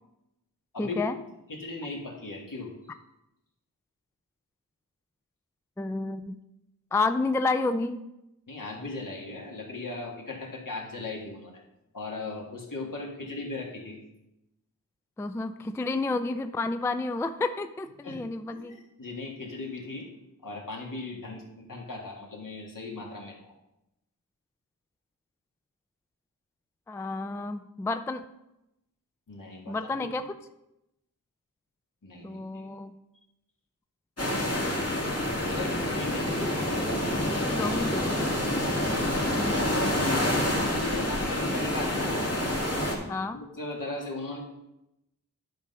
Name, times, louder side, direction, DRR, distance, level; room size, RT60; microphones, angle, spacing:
voice 1, 0.8-1.1 5.8-6.4 6.9-8.0 15.2-18.8 26.9-28.2 29.7-30.2 32.2-32.9 36.9-37.1 37.3-38.2 43.1-43.4, left 3 dB, 10° left, 9 dB, 0.3 m, -30 dB
voice 2, 1.5-2.7 8.5-11.6 11.9-14.0 18.0-18.2 18.5-20.1 20.4-23.5 29.3-30.2 32.0-32.6 35.5-36.5 38.5-38.9 39.5-42.2 43.3-44.4, left 3 dB, 65° left, -1 dB, 1.9 m, -38 dB
sound 1, 34.2-42.9, left 1 dB, 45° left, 2.1 m, -27 dB
10.5 x 3.9 x 5.5 m, 0.89 s
wide cardioid pair, 75°, 35 cm